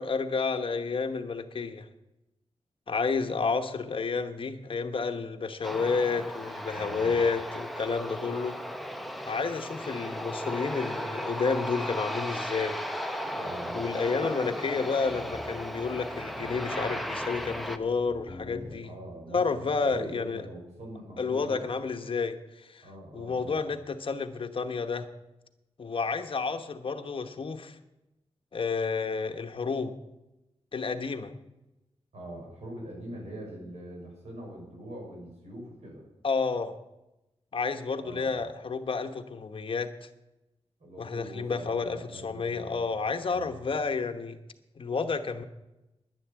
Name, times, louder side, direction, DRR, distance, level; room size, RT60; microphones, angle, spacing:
voice 1, 0.0-1.9 2.9-8.6 9.3-12.8 13.7-18.9 19.3-20.4 21.2-22.9 23.1-25.1 25.8-27.8 28.5-29.9 30.7-31.3 36.2-36.8 37.5-40.1 41.0-44.4 44.8-45.4, left 4 dB, 50° left, 8 dB, 1.1 m, -30 dB
Aircraft, 5.6-17.8, equal, ahead, 0.8 m, -35 dB
voice 2, 6.7-7.2 13.4-13.8 18.6-19.4 19.8-21.6 22.8-23.6 32.1-36.0 38.0-38.4 40.8-42.8 43.3-43.6, right 1 dB, 75° right, -2 dB, 6.1 m, -43 dB
sound 1, 15.0-18.8, left 2 dB, 35° left, 1.6 m, -46 dB
11.0 x 10.5 x 8.2 m, 0.95 s
wide cardioid pair, 160°, 11 cm